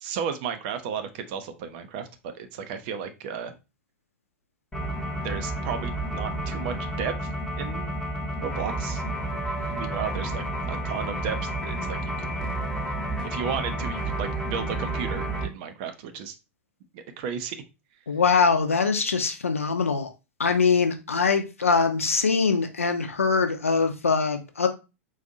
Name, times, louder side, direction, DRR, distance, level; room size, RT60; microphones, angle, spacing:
voice 1, 0.0-2.1 2.3-3.6 5.1-7.9 8.4-9.0 9.7-12.3 13.2-16.4 16.9-17.6, right 7 dB, 45° right, 8 dB, 0.6 m, -34 dB
sound 1, 4.7-15.4, right 1 dB, 10° left, 0.8 m, -30 dB
voice 2, 18.1-20.1 20.4-24.7, left 5 dB, 75° left, 7 dB, 0.6 m, -23 dB
3.9 x 2.5 x 2.7 m, 0.27 s
figure-of-eight pair, 95°, 7 cm